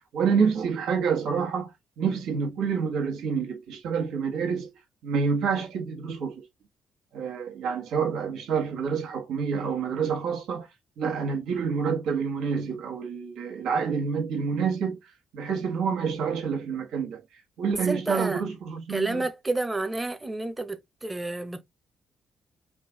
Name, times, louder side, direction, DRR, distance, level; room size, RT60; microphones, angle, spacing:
voice 1, 0.1-1.7 2.0-4.7 5.0-6.4 7.1-10.7 11.0-15.0 15.3-17.2 17.6-19.2, right 6 dB, 80° right, 1.5 m, -28 dB
voice 2, 17.9-18.4 18.9-21.6, right 2 dB, 15° right, 0.9 m, -30 dB
5.3 x 2.4 x 3.8 m
cardioid pair, 90°, 0 cm